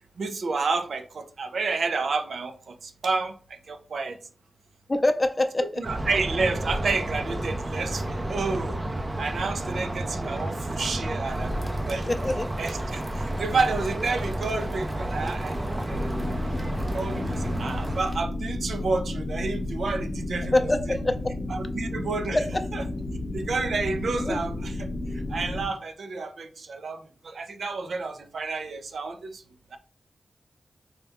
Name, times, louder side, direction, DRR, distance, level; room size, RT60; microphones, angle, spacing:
voice 1, 0.2-4.2 5.8-8.8 9.2-12.1 12.6-15.6 15.9-16.2 16.9-20.5 21.5-22.4 22.7-22.8 23.3-29.4 29.7-29.8, right 4 dB, 85° right, 7 dB, 0.5 m, -30 dB
voice 2, 4.9-5.6 12.1-12.5 20.5-21.3 22.3-22.4 24.2-24.4, left 2 dB, 30° left, 8 dB, 0.4 m, -24 dB
sound 1, 5.8-18.0, right 1 dB, 35° right, 0.5 m, -31 dB
sound 2, 11.3-18.2, equal, 20° right, 0.9 m, -36 dB
sound 3, 15.9-25.7, left 2 dB, 65° left, 0.7 m, -32 dB
4.0 x 2.2 x 3.5 m, 0.43 s
wide cardioid pair, 70°, 0 cm